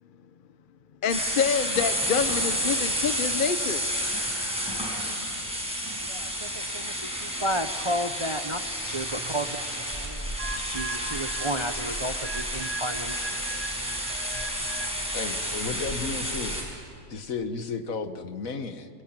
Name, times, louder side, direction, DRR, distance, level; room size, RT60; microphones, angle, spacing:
voice 1, 1.0-3.8, left 7 dB, 45° left, 12 dB, 0.8 m, -27 dB
sound 1, 1.1-16.6, equal, 5° right, 6.5 m, -30 dB
voice 2, 6.0-13.3, equal, 25° right, 8 dB, 0.7 m, -33 dB
sound 2, 10.4-15.1, right 3 dB, 55° right, 3.0 m, -39 dB
voice 3, 15.1-16.6 17.1-18.9, left 4 dB, 70° left, 9 dB, 1.8 m, -33 dB
25.5 x 23.0 x 8.9 m, 2.6 s
omnidirectional pair, 1.5 m